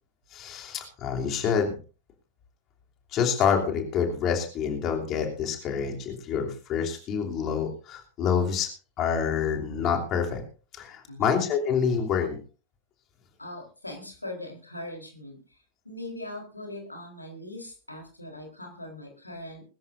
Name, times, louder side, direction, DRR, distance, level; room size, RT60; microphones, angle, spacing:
voice 1, 0.3-1.8 3.1-8.7 9.0-10.4 10.7-12.4, left 7 dB, 35° left, 2 dB, 3.0 m, -27 dB
voice 2, 13.4-15.6 15.8-19.6, left 1 dB, 85° left, 2 dB, 4.0 m, -40 dB
22.0 x 13.5 x 2.6 m, 0.35 s
figure-of-eight pair, 90°, 0 cm